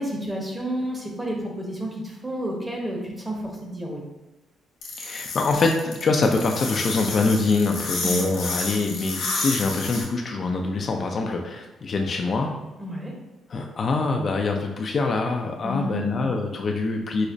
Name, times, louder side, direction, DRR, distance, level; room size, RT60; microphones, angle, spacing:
voice 1, 0.0-4.0 8.0-8.3 12.8-13.1 15.6-16.4, equal, 15° right, -1 dB, 0.9 m, -30 dB
sound 1, 4.8-10.0, left 3 dB, 90° left, 1.0 m, -30 dB
voice 2, 5.0-12.5 13.5-17.3, left 3 dB, 45° left, 2 dB, 0.3 m, -24 dB
5.1 x 2.0 x 2.5 m, 1.1 s
cardioid pair, 90°, 0 cm